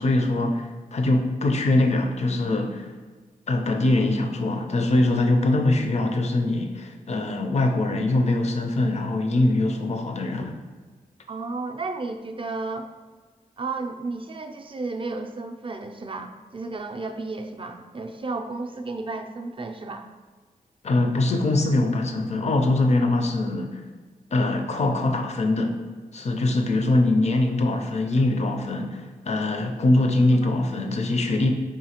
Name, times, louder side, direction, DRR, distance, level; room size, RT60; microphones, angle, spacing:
voice 1, 0.0-2.9 3.5-10.6 20.8-23.8 24.3-25.8 26.1-31.5, left 2 dB, 45° left, 4 dB, 0.5 m, -23 dB
voice 2, 11.3-12.9 13.6-20.1 30.4-30.5, right 3 dB, 35° right, 5 dB, 0.4 m, -33 dB
4.8 x 2.8 x 2.8 m, 1.4 s
cardioid pair, 60°, 15 cm